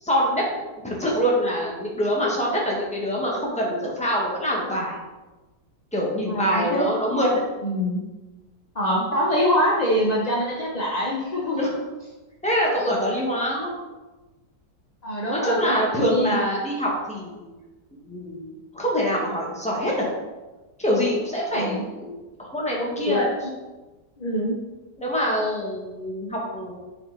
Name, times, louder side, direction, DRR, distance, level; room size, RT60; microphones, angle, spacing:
voice 1, 0.0-0.5 0.8-4.9 5.9-7.4 11.6-11.7 12.4-13.7 15.3-17.5 17.9-20.1 20.8-22.1 22.4-23.3 25.0-26.8, equal, 5° left, -4 dB, 1.1 m, -25 dB
voice 2, 6.3-6.9 7.6-8.0 8.7-11.7 15.0-16.4 21.5-21.8 23.1-23.3 24.2-24.6, equal, 60° left, -3 dB, 0.4 m, -24 dB
5.6 x 4.4 x 3.8 m, 1.2 s
omnidirectional pair, 1.9 m